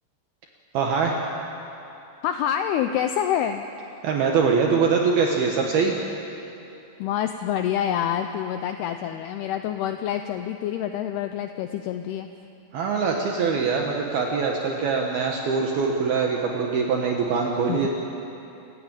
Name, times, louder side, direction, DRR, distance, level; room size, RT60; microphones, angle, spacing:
voice 1, 0.7-1.2 4.0-6.0 12.7-17.9, right 5 dB, 65° right, 0 dB, 3.0 m, -23 dB
voice 2, 2.2-3.6 7.0-12.3 17.7-17.9, left 10 dB, 80° left, 7 dB, 2.4 m, -27 dB
27.5 x 15.5 x 9.0 m, 2.8 s
omnidirectional pair, 5.3 m